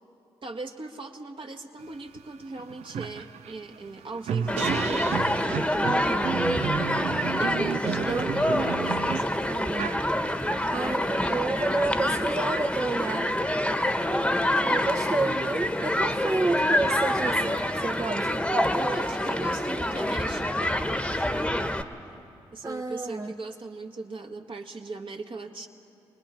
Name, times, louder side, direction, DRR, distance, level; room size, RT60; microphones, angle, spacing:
voice 1, 0.4-5.0 7.4-9.4 18.7-20.7 21.1-21.3 22.1-22.2 22.5-25.7, right 3 dB, 50° right, 3 dB, 1.6 m, -39 dB
sound 1, 2.2-2.3 2.6-10.6, right 8 dB, 70° right, 0.5 m, -32 dB
Human group actions, 4.5-21.8, left 1 dB, 10° left, 1.3 m, -26 dB
voice 2, 5.8-6.5 7.8-8.3 9.5-9.9 10.7-13.3 14.3-18.5 22.6-23.3, right 2 dB, 30° right, 2 dB, 0.9 m, -30 dB
28.5 x 20.5 x 4.5 m, 2.6 s
hypercardioid pair, 40°, 11 cm